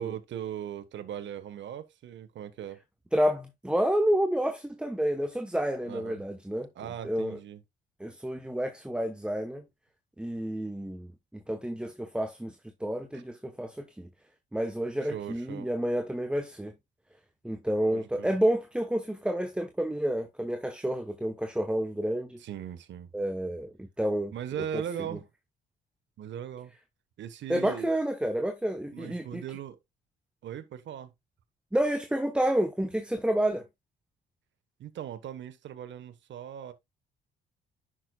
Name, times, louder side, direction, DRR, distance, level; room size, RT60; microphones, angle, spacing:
voice 1, 0.0-2.8 5.8-6.2 6.7-7.6 13.1-13.2 15.0-15.7 17.9-18.4 22.4-23.1 24.3-25.2 26.2-26.7 27.2-27.9 28.9-29.8 30.4-31.1 34.8-36.7, right 10 dB, 70° right, 1.2 m, -39 dB
voice 2, 3.1-6.7 7.0-7.4 8.0-9.6 10.2-12.5 12.8-14.1 14.5-16.7 17.4-22.4 23.1-24.3 24.7-24.8 27.5-29.4 31.7-33.7, right 1 dB, 5° right, 1.0 m, -29 dB
10.0 x 6.4 x 2.3 m
cardioid pair, 90°, 20 cm